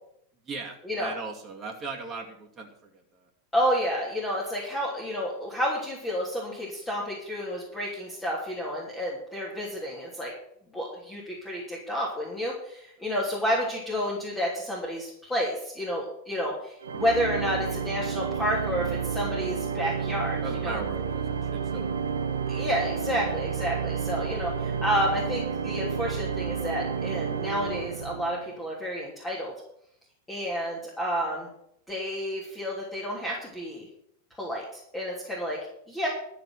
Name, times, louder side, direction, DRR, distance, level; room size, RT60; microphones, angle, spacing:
voice 1, 0.5-3.0 20.4-22.1, right 3 dB, 20° right, -1 dB, 2.4 m, -38 dB
voice 2, 3.5-10.3 10.7-20.4 20.6-20.8 22.5-29.5 30.3-31.5 31.9-33.8 34.4-35.6 35.9-36.1, equal, 10° left, -4 dB, 3.1 m, -30 dB
Organ, 16.8-28.6, right 6 dB, 65° right, 1.1 m, -31 dB
12.5 x 6.6 x 7.9 m, 0.74 s
figure-of-eight pair, 90°, 0 cm